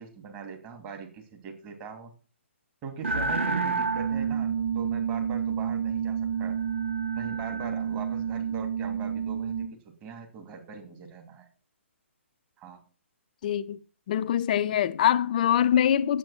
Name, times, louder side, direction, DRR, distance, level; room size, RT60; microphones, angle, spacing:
voice 1, 0.0-2.1 2.8-6.6 7.1-11.5 12.6-12.8, right 5 dB, 25° right, 2.8 m, -41 dB
sound 1, 3.0-9.7, right 6 dB, 65° right, 1.8 m, -29 dB
voice 2, 13.4-13.8 14.1-16.2, left 10 dB, 40° left, 0.8 m, -24 dB
10.5 x 8.2 x 5.9 m
figure-of-eight pair, 130°, 7 cm